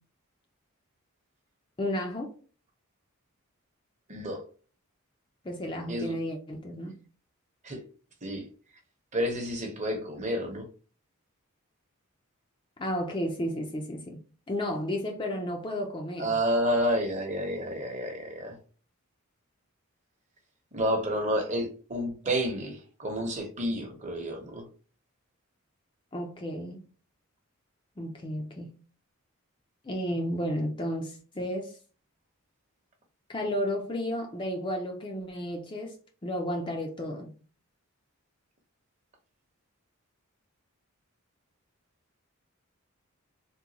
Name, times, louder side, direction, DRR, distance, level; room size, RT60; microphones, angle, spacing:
voice 1, 1.8-2.3 5.4-6.9 12.8-14.2 14.5-16.4 26.1-26.8 28.0-28.7 29.8-31.7 33.3-36.0 36.2-37.3, equal, 20° left, 0.4 m, -32 dB
voice 2, 4.1-4.4 5.9-6.1 7.6-7.8 8.2-8.4 9.1-10.7 16.2-18.6 20.7-24.6, equal, 30° right, 0.8 m, -30 dB
3.7 x 2.2 x 2.8 m
head